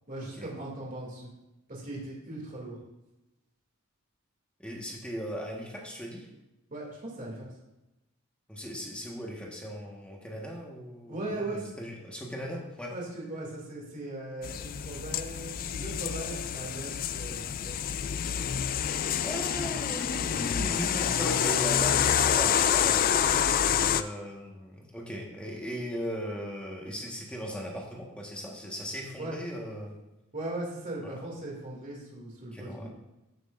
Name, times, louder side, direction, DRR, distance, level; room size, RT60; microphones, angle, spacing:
voice 1, 0.1-1.3 1.7-2.8 6.7-7.5 11.1-11.7 12.9-17.7 29.2-29.4 30.3-32.9, right 2 dB, 40° right, -4 dB, 2.6 m, -38 dB
voice 2, 4.6-6.3 8.5-12.9 18.9-23.4 23.6-29.9 31.0-31.2 32.5-32.9, equal, 5° left, -1 dB, 1.5 m, -38 dB
sound 1, 14.4-24.0, left 9 dB, 40° left, 0.3 m, -27 dB
14.0 x 6.4 x 2.6 m, 0.97 s
head